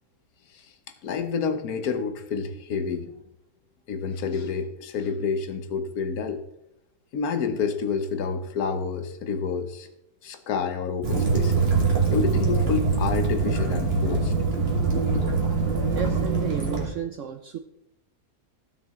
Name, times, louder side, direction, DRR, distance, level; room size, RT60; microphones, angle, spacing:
voice 1, 1.0-3.1 3.9-6.4 7.1-9.9 10.2-11.6 12.1-14.3, left 5 dB, 65° left, 9 dB, 1.4 m, -29 dB
Waves surf / Splash splatter / Trickle dribble, 11.0-16.9, right 4 dB, 40° right, 2.2 m, -23 dB
voice 2, 15.9-17.6, right 8 dB, 65° right, 8 dB, 0.8 m, -32 dB
15.0 x 6.3 x 3.7 m, 0.85 s
omnidirectional pair, 1.7 m